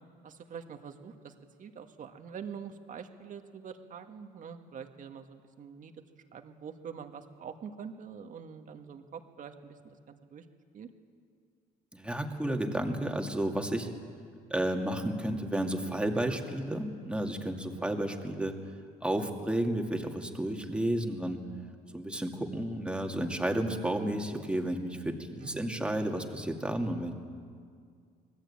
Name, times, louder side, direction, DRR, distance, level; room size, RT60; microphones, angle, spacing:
voice 1, 0.2-1.3 1.6-5.9 6.3-10.5 10.7-10.9 17.6-17.9 25.4-25.7, right 7 dB, 50° right, 6 dB, 1.9 m, -45 dB
voice 2, 11.9-13.9 14.5-18.7 19.0-21.4 21.9-27.1, right 1 dB, 5° right, 3 dB, 2.4 m, -32 dB
25.5 x 19.5 x 8.8 m, 2.1 s
cardioid pair, 110°, 17 cm